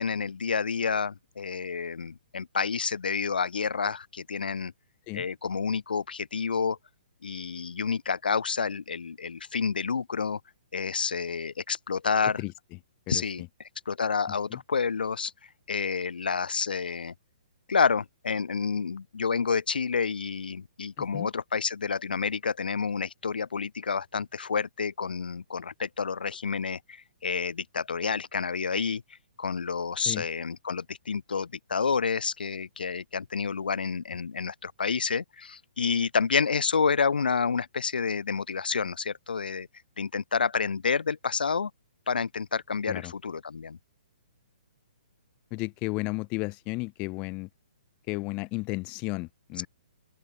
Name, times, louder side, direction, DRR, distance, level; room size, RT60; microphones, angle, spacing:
voice 1, 0.0-4.7 5.1-6.8 7.2-10.4 10.7-12.4 13.1-13.4 13.9-15.3 15.7-17.1 17.7-29.0 29.4-39.7 40.0-41.7 42.1-43.8, left 5 dB, 90° left, 2.1 m, -29 dB
voice 2, 13.1-13.5 14.5-14.6 21.0-21.3 30.1-30.3 42.9-43.1 45.5-47.5 48.1-49.7, left 25 dB, 20° left, 0.6 m, -33 dB
open air
hypercardioid pair, 160°, 5 cm